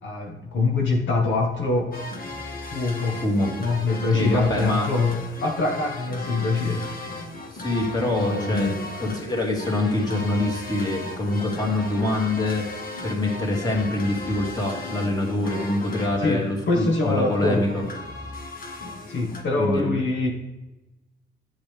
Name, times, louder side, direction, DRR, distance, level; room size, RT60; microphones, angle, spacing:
voice 1, 0.0-1.9 2.7-3.2 3.6-6.9 8.1-8.8 16.2-17.7 19.1-20.3, left 3 dB, 70° left, 0 dB, 1.7 m, -24 dB
sound 1, 1.9-19.4, left 2 dB, 45° left, 1.7 m, -37 dB
voice 2, 4.1-4.9 7.5-12.7 13.0-17.8 19.6-19.9, left 2 dB, 20° left, -1 dB, 2.8 m, -25 dB
10.0 x 8.2 x 3.5 m, 1.0 s
cardioid pair, 90°, 20 cm